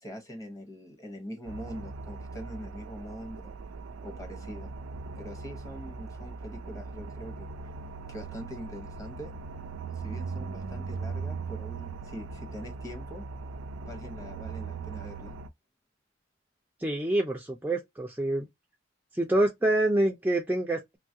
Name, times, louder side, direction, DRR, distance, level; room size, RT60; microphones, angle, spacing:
voice 1, 0.0-3.5 4.0-4.7 5.2-7.5 8.1-9.3 9.9-13.2 13.9-15.3, equal, 15° left, 0.8 m, -43 dB
sound 1, 1.4-15.5, right 4 dB, 85° right, 0.4 m, -39 dB
voice 2, 16.8-18.5 19.1-21.0, right 1 dB, 10° right, 0.3 m, -26 dB
3.1 x 2.3 x 2.6 m
head